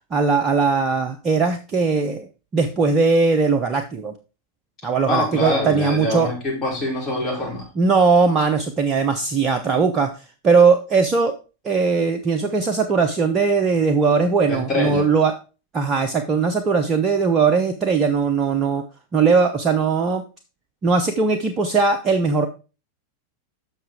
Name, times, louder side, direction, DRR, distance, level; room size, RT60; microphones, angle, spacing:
voice 1, 0.1-4.1 4.8-6.3 7.8-10.1 10.4-11.4 11.6-15.3 15.7-18.8 19.1-20.2 20.8-22.5, right 4 dB, 25° right, 6 dB, 0.8 m, -19 dB
voice 2, 5.1-7.7 14.5-15.1, left 1 dB, 25° left, -1 dB, 4.7 m, -24 dB
7.7 x 5.8 x 4.7 m, 0.31 s
figure-of-eight pair, 90°, 0 cm